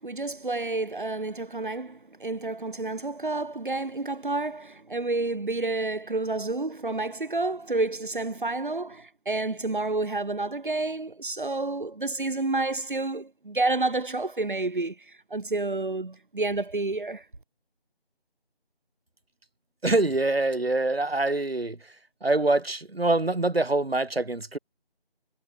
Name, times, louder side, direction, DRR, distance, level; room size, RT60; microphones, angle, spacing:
voice 1, 0.0-17.2, right 2 dB, 55° right, 2.5 m, -29 dB
voice 2, 19.8-21.8 22.2-24.6, right 2 dB, 70° right, 2.7 m, -25 dB
figure-of-eight pair, 170°, 31 cm